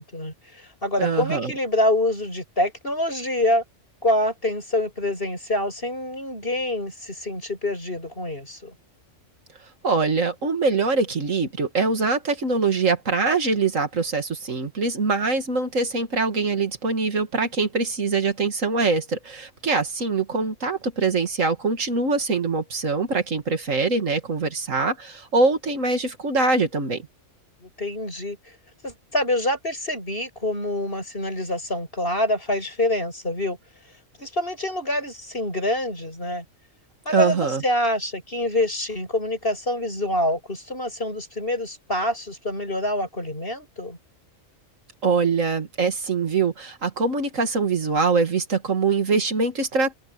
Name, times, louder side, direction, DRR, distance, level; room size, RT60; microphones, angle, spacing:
voice 1, 0.0-3.6 4.0-8.7 27.6-28.4 28.8-33.6 34.2-36.4 37.0-44.0, left 1 dB, 45° left, 8.3 m, -26 dB
voice 2, 1.0-1.5 9.8-27.1 37.1-37.6 45.0-49.9, right 4 dB, 75° right, 2.5 m, -23 dB
open air
omnidirectional pair, 1.3 m